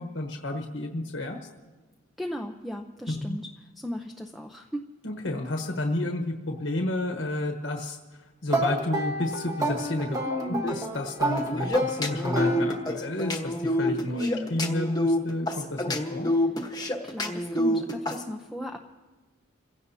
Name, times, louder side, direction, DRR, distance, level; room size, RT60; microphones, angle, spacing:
voice 1, 0.0-1.4 3.1-3.4 5.0-8.0 8.4-16.3, left 1 dB, 65° left, 2 dB, 1.2 m, -31 dB
voice 2, 2.2-3.5 3.8-4.8 10.2-10.8 14.1-14.5 16.3-16.5 17.0-18.8, equal, ahead, 3 dB, 0.6 m, -35 dB
sound 1, 8.5-13.1, right 1 dB, 15° right, 1.3 m, -30 dB
sound 2, 11.4-18.2, left 1 dB, 20° left, 1.2 m, -27 dB
28.5 x 16.5 x 2.8 m, 1.2 s
head